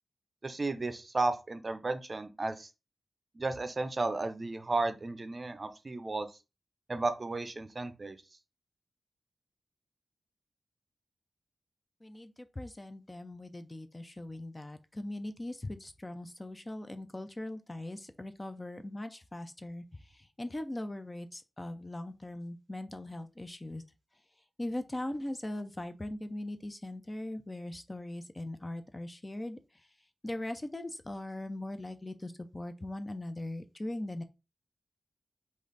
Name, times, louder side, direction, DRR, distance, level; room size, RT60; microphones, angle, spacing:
voice 1, 0.4-2.7 3.4-6.3 6.9-8.2, right 3 dB, 30° right, 0.5 m, -33 dB
voice 2, 12.0-19.8 20.1-23.8 24.6-29.6 30.2-34.2, left 1 dB, 20° left, 0.4 m, -40 dB
5.3 x 2.5 x 3.9 m
wide cardioid pair, 160°, 0 cm